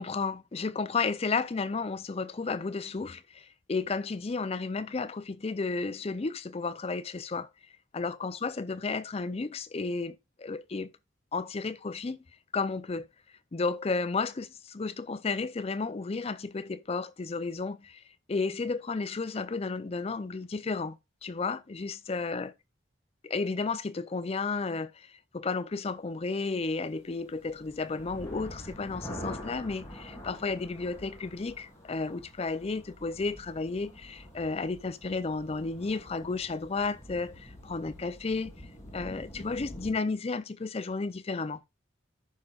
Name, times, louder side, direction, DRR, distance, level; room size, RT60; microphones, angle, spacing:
voice 1, 0.0-7.5 7.9-10.9 11.3-12.2 12.5-13.1 13.5-18.0 18.3-22.5 23.2-38.5 38.9-41.6, left 4 dB, 30° left, 0.4 m, -33 dB
sound 1, 27.1-39.9, equal, 15° left, 2.9 m, -46 dB
14.0 x 5.4 x 2.4 m
head